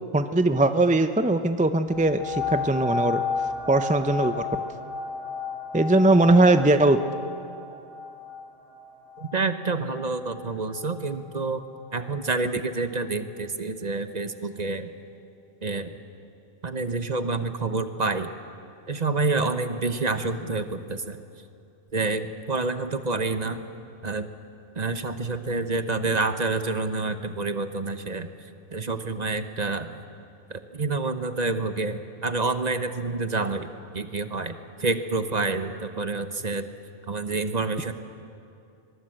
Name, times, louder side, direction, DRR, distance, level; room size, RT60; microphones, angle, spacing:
voice 1, 0.1-3.2 3.7-4.5 5.7-7.0, right 2 dB, 10° right, 9 dB, 0.4 m, -20 dB
sound 1, 1.9-11.1 11.8-11.9, left 4 dB, 70° left, 6.9 m, -33 dB
voice 2, 9.2-11.6 11.9-14.9 15.6-15.9 16.6-18.3 18.9-21.2 21.9-23.6 24.0-24.3 24.7-28.3 28.7-29.9 30.5-33.7 33.9-36.7 37.1-37.9, right 3 dB, 35° right, 10 dB, 1.0 m, -28 dB
22.5 x 22.0 x 7.8 m, 2.6 s
omnidirectional pair, 1.2 m